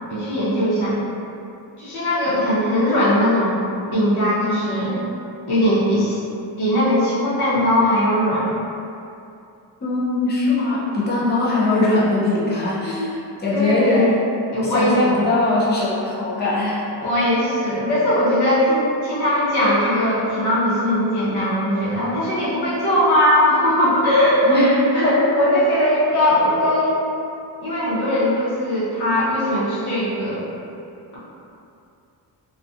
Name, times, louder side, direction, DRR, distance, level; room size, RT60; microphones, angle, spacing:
voice 1, 0.1-1.0 1.8-3.6 3.9-5.0 5.5-6.2 6.6-8.5 13.5-14.2 14.5-15.2 17.0-24.6 24.9-27.0 27.6-30.4, left 1 dB, 65° left, -9 dB, 0.9 m, -19 dB
voice 2, 9.8-14.2 14.6-16.8 24.4-24.7 25.1-25.3, left 2 dB, 25° left, -7 dB, 0.4 m, -21 dB
2.6 x 2.4 x 2.4 m, 2.6 s
wide cardioid pair, 165°, 43 cm